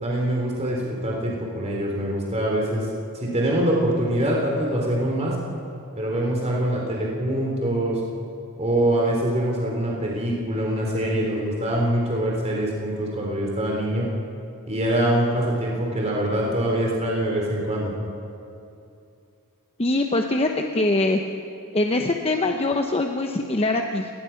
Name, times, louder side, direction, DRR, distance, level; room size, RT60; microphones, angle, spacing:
voice 1, 0.0-2.9 3.2-5.4 6.0-8.0 8.6-14.1 14.7-17.9, right 1 dB, 30° right, -2 dB, 3.6 m, -24 dB
voice 2, 19.8-21.2 21.7-24.1, left 2 dB, 25° left, 3 dB, 0.9 m, -23 dB
29.0 x 20.0 x 5.9 m, 2.6 s
head